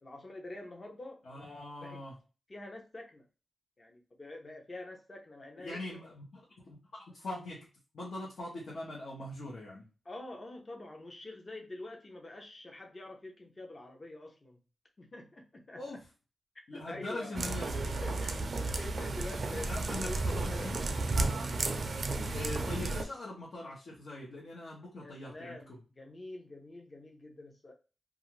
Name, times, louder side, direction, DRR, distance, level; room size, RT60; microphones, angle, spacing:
voice 1, 0.0-2.0 2.5-3.3 3.8-6.1 10.0-14.6 15.0-16.0 16.7-17.4 17.8-20.7 21.5-22.0 25.0-27.7, left 2 dB, 35° left, 2 dB, 0.5 m, -46 dB
voice 2, 1.3-2.1 5.6-6.2 6.6-7.6 7.9-9.8 15.8-16.0 16.7-17.8 19.6-20.8 22.3-25.8, left 2 dB, 75° left, -5 dB, 0.9 m, -42 dB
sound 1, 17.4-23.0, right 2 dB, 55° right, 0.4 m, -33 dB
2.4 x 2.4 x 3.0 m, 0.33 s
wide cardioid pair, 125°, 0 cm